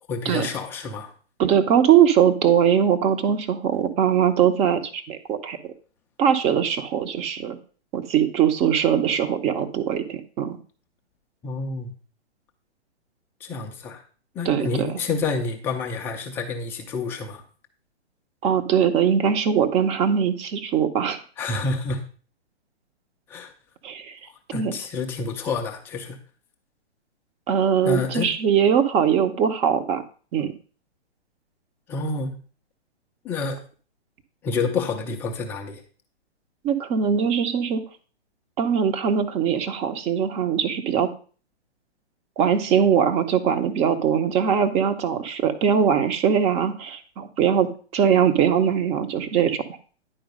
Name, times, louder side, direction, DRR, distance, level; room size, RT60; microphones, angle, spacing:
voice 1, 0.1-1.1 11.4-12.0 13.4-14.0 14.3-17.4 21.4-22.0 23.3-23.5 24.5-26.2 27.8-28.3 31.9-32.4 33.2-33.6 34.4-35.8, left 4 dB, 5° left, 2 dB, 0.4 m, -28 dB
voice 2, 1.4-5.7 6.2-7.6 7.9-10.6 14.4-14.9 18.4-21.2 23.8-24.1 24.5-24.7 27.5-30.0 30.3-30.5 36.6-37.8 38.6-41.1 42.4-49.6, right 8 dB, 20° right, 9 dB, 0.8 m, -21 dB
10.0 x 4.6 x 5.2 m, 0.40 s
figure-of-eight pair, 125°, 34 cm